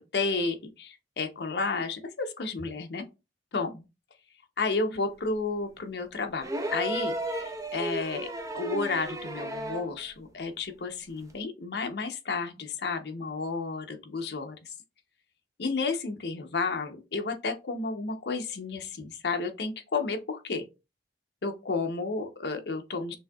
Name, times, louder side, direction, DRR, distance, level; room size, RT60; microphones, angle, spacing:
voice 1, 0.1-3.0 3.5-3.7 4.6-8.3 8.5-14.7 15.6-20.6 21.4-23.2, left 4 dB, 65° left, 0.7 m, -32 dB
sound 1, 6.4-10.0 11.3-11.4, right 1 dB, 20° right, 0.6 m, -34 dB
6.2 x 2.7 x 2.3 m
head